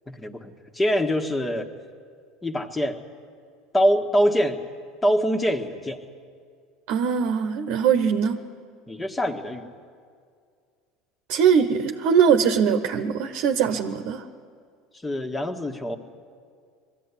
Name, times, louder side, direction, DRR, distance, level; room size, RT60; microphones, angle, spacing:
voice 1, 0.1-1.7 2.4-3.0 3.7-4.6 5.0-6.0 8.9-9.7 15.0-16.0, equal, 15° left, 6 dB, 1.7 m, -24 dB
voice 2, 6.9-8.4 11.3-14.2, right 7 dB, 65° right, 6 dB, 1.1 m, -21 dB
20.5 x 14.5 x 9.9 m, 2.1 s
hypercardioid pair, 90°, 0 cm